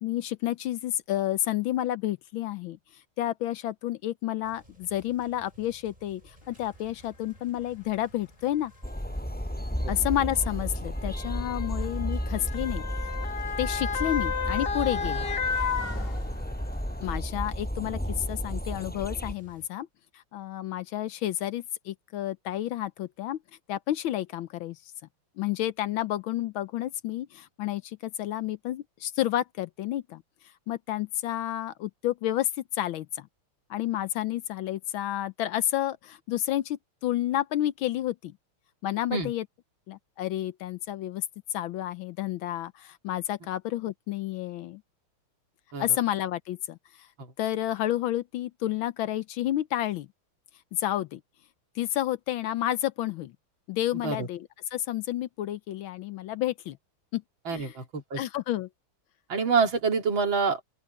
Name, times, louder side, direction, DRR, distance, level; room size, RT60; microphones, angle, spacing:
voice 1, 0.0-2.8 3.2-8.7 9.9-13.1 13.6-15.3 17.0-19.9 20.1-23.4 23.7-24.8 25.4-30.2 30.7-33.3 33.7-38.3 38.8-39.4 39.9-41.2 41.5-44.8 45.8-47.1 47.4-50.1 50.7-51.2 51.8-53.3 53.7-56.8 57.1-57.2 57.5-57.7 58.2-58.7, left 13 dB, 75° left, 1.4 m, -30 dB
sound 1, 4.4-19.7, right 1 dB, 20° right, 7.7 m, -56 dB
Motor vehicle (road) / Siren, 6.7-6.8 7.8-8.0 9.1-16.7 17.1-17.2, left 6 dB, 35° left, 1.0 m, -33 dB
sound 2, 8.8-19.3, equal, 5° left, 6.2 m, -33 dB
voice 2, 53.9-54.3 57.5-58.2 59.3-60.6, right 5 dB, 60° right, 3.1 m, -27 dB
open air
omnidirectional pair, 2.4 m